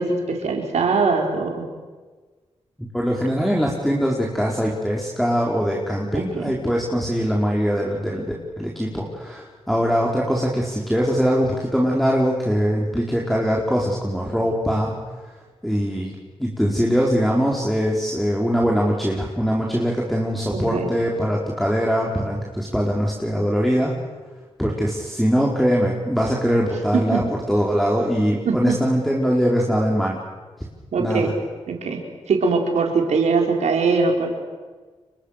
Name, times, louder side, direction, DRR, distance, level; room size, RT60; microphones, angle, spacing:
voice 1, 0.0-1.6 6.1-6.5 20.5-20.9 27.1-27.2 28.4-28.7 30.9-31.3 31.7-32.0 32.3-34.3, right 4 dB, 85° right, 2 dB, 4.9 m, -21 dB
voice 2, 2.8-14.9 15.6-24.0 24.6-30.2 31.0-31.3, equal, ahead, -2 dB, 4.7 m, -22 dB
30.0 x 25.0 x 6.8 m, 1.4 s
cardioid pair, 60°, 12 cm